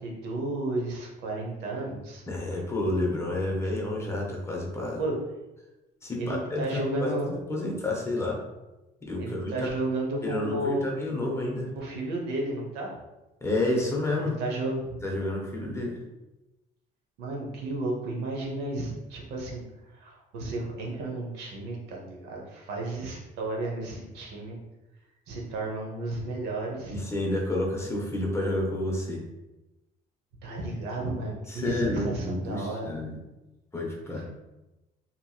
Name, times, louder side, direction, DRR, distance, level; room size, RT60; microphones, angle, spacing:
voice 1, 0.0-2.2 5.0-5.2 6.2-7.3 9.2-10.8 11.7-12.9 14.2-15.0 17.2-19.6 19.9-24.6 25.3-27.0 30.4-32.9, right 2 dB, 85° right, -1 dB, 0.8 m, -33 dB
voice 2, 2.3-5.0 6.0-8.4 9.0-9.5 10.2-11.7 13.4-14.4 15.0-16.0 26.9-29.2 31.5-33.2 33.7-34.3, left 1 dB, 15° left, -2 dB, 0.7 m, -30 dB
2.8 x 2.8 x 2.2 m, 1.0 s
cardioid pair, 110°, 17 cm